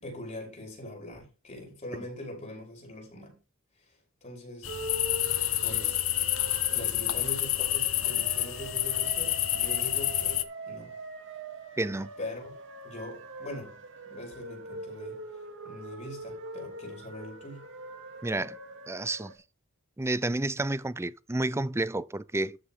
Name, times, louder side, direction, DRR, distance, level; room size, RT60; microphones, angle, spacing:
voice 1, 0.0-3.4 3.8-4.7 5.6-6.0 6.7-10.9 12.2-12.5 12.8-13.8 14.1-15.2 15.6-17.6, left 1 dB, 35° left, 5.8 m, -42 dB
sound 1, 4.6-10.4, left 14 dB, 70° left, 1.2 m, -28 dB
sound 2, 4.7-19.3, right 2 dB, 60° right, 2.5 m, -43 dB
voice 2, 11.8-12.1 18.2-18.6 18.9-19.3 20.0-22.6, right 2 dB, 10° right, 0.5 m, -30 dB
13.0 x 6.6 x 3.7 m
head